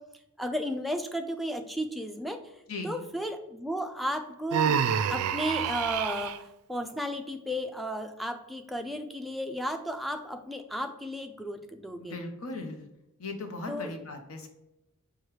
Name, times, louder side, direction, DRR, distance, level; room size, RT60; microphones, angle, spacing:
voice 1, 0.4-2.4 2.8-4.8 5.1-6.3 6.7-12.2 13.7-13.9, equal, ahead, 5 dB, 0.3 m, -34 dB
voice 2, 2.7-3.0 12.0-12.9 13.2-14.5, left 2 dB, 65° left, 4 dB, 0.8 m, -38 dB
Human voice, 4.5-6.4, right 7 dB, 80° right, 0.3 m, -27 dB
4.7 x 2.4 x 4.6 m, 0.90 s
head